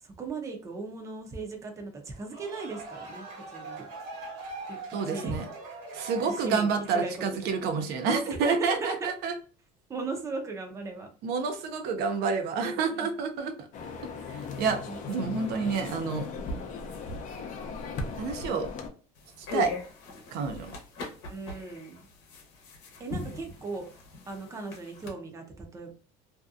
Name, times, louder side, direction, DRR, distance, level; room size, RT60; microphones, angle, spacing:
voice 1, 0.0-3.3 3.5-3.9 4.7-4.8 5.1-5.4 6.3-7.5 8.3-9.1 9.9-11.1 12.6-13.1 14.9-15.0 21.3-22.1 23.0-23.9 24.3-25.9, right 3 dB, 20° right, 3 dB, 0.5 m, -37 dB
sound 1, 2.1-7.1, right 3 dB, 85° right, 1.2 m, -42 dB
voice 2, 4.9-5.4 5.9-9.3 11.2-13.7 14.3-14.8 15.1-16.3 18.2-18.7 19.4-19.7 20.3-20.7, right 5 dB, 70° right, 6 dB, 0.5 m, -29 dB
sound 2, 13.7-18.9, left 4 dB, 50° left, 0.5 m, -37 dB
sound 3, 19.2-25.1, left 3 dB, 80° left, 0.8 m, -40 dB
2.6 x 2.2 x 2.4 m, 0.39 s
cardioid pair, 130°, 17 cm